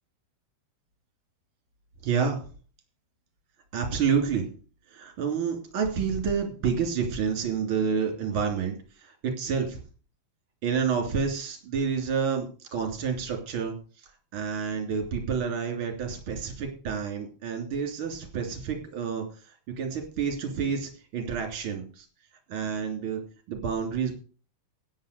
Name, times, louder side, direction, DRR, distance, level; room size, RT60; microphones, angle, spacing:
voice 1, 2.0-2.5 3.7-4.4 4.9-8.7 9.0-9.8 10.6-12.5 12.7-13.8 14.3-19.2 19.8-22.1 22.5-23.2 23.5-24.1, right 6 dB, 30° right, 3 dB, 3.2 m, -29 dB
10.0 x 8.9 x 6.7 m, 0.37 s
omnidirectional pair, 5.4 m